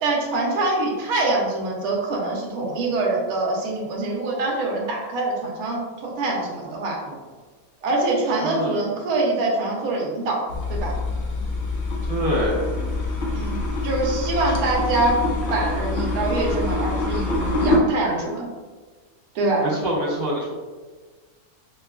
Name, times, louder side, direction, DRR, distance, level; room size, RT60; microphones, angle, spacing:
voice 1, 0.0-7.0 7.8-10.4 10.7-11.0 13.3-13.6 13.8-15.2 15.5-18.5 19.3-19.7, right 2 dB, 70° right, -2 dB, 1.1 m, -24 dB
voice 2, 8.4-8.8 12.1-12.6 19.6-20.4, equal, 45° right, -5 dB, 0.8 m, -24 dB
sound 1, 10.5-17.8, left 2 dB, 65° left, 0.5 m, -25 dB
4.9 x 2.3 x 2.3 m, 1.4 s
omnidirectional pair, 1.7 m